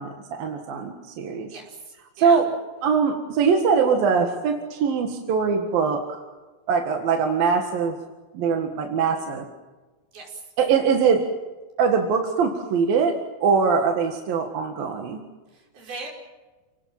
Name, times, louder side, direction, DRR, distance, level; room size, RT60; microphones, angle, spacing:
voice 1, 0.0-1.5 2.2-2.5 2.8-6.2 6.7-8.0 8.3-9.5 10.6-11.2 11.8-15.2, right 5 dB, 75° right, 3 dB, 3.6 m, -22 dB
voice 2, 1.5-2.4 10.1-10.4 15.5-16.1, right 3 dB, 90° right, 0 dB, 7.2 m, -39 dB
29.5 x 19.5 x 7.4 m, 1.2 s
omnidirectional pair, 4.2 m